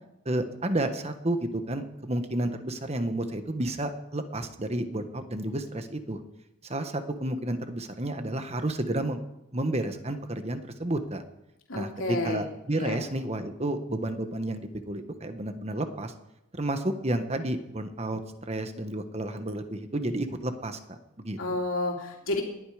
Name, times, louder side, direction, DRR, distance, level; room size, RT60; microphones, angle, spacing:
voice 1, 0.2-6.2 6.6-9.2 9.5-11.2 11.7-16.1 16.5-18.2 18.5-21.4, right 1 dB, 30° right, 8 dB, 1.3 m, -31 dB
voice 2, 11.7-12.4 12.7-13.0 21.4-22.4, left 2 dB, 85° left, -1 dB, 3.3 m, -30 dB
20.0 x 12.0 x 5.0 m, 0.91 s
head